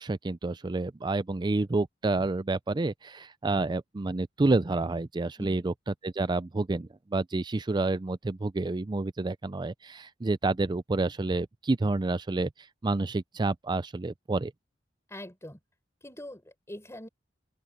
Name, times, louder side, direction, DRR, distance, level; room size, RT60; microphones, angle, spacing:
voice 1, 0.0-5.7 6.0-12.5 12.8-14.5, right 2 dB, 25° right, 0.4 m, -29 dB
voice 2, 15.1-15.6 16.0-17.1, left 1 dB, 15° left, 6.8 m, -43 dB
open air
head